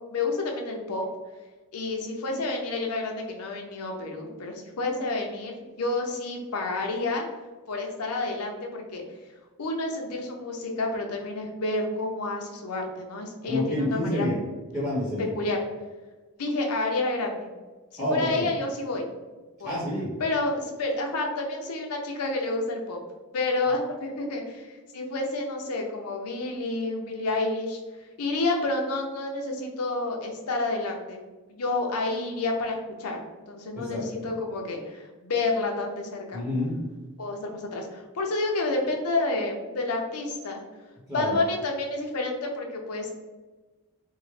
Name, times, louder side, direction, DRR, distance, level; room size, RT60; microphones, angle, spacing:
voice 1, 0.1-1.0 1.7-7.2 7.7-9.0 9.6-14.3 15.3-15.6 16.4-17.5 17.9-19.1 19.6-19.8 20.2-23.0 23.3-24.7 24.9-27.8 28.2-31.2 31.5-33.2 33.5-36.4 37.2-40.6 41.1-43.1, left 2 dB, 80° left, 2 dB, 0.6 m, -29 dB
voice 2, 13.5-14.4 14.7-15.3 18.0-18.4 19.6-20.1 33.7-34.0 36.3-36.8 41.1-41.4, left 1 dB, 5° right, -8 dB, 1.0 m, -28 dB
3.6 x 2.1 x 3.2 m, 1.2 s
head